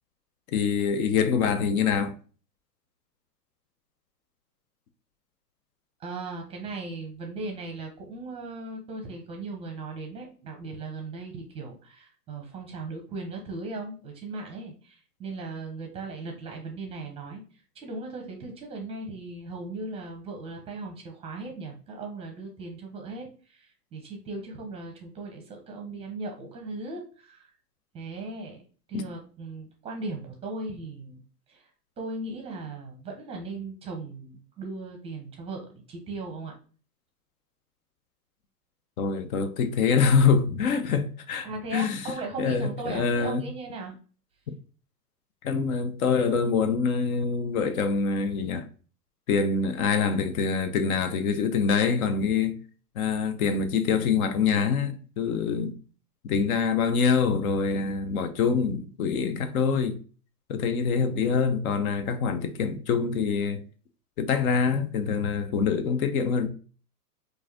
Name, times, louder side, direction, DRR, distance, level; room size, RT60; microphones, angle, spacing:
voice 1, 0.5-2.2 28.9-29.0 39.0-42.0 42.4-43.5 45.4-48.7 49.3-52.5 53.0-55.7 56.2-60.0 60.5-63.6 64.2-66.5, left 5 dB, 60° left, 0.7 m, -25 dB
voice 2, 6.0-17.4 17.7-27.5 27.9-28.6 28.9-31.2 31.5-31.7 32.0-36.5 41.4-43.9, right 3 dB, 10° right, 0.7 m, -38 dB
4.6 x 2.6 x 2.8 m
hypercardioid pair, 130°, 49 cm